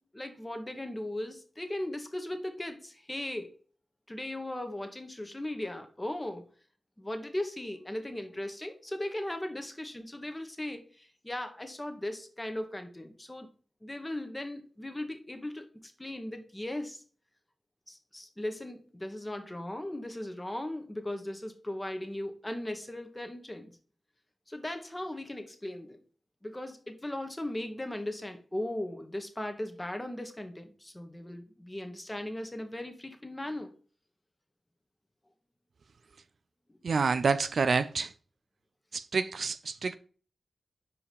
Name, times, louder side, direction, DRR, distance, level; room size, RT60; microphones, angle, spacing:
voice 1, 0.0-3.5 4.1-6.4 7.0-13.5 13.8-15.7 16.0-17.0 17.9-23.7 24.5-26.0 26.4-33.7 36.7-36.8, left 1 dB, 20° left, 1.3 m, -38 dB
voice 2, 36.8-38.1 38.9-40.0, right 4 dB, 75° right, 0.4 m, -28 dB
5.0 x 4.8 x 5.2 m
cardioid pair, 55°, 0 cm